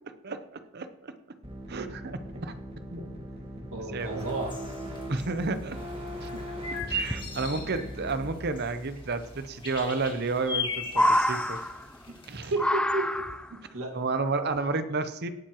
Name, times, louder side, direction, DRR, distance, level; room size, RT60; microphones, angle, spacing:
voice 1, 0.2-0.9 1.7-2.5 3.9-4.1 4.9-5.8 6.2-6.4 6.9-11.6 12.3-12.5 13.9-15.3, right 3 dB, 50° right, 10 dB, 0.7 m, -31 dB
sound 1, 1.4-8.3, equal, 25° right, 1.8 m, -40 dB
voice 2, 3.6-4.5 12.5-13.1 13.7-13.9, right 2 dB, 75° right, 2 dB, 2.0 m, -32 dB
sound 2, 4.2-12.5, left 2 dB, 25° left, 1.9 m, -38 dB
sound 3, 5.6-5.7 5.9-6.0 6.6-7.2 8.8-8.9 10.1-10.6 10.8-12.1 12.6-13.6 14.6-14.7, left 1 dB, 5° left, 0.3 m, -27 dB
18.0 x 9.4 x 3.0 m, 0.97 s
head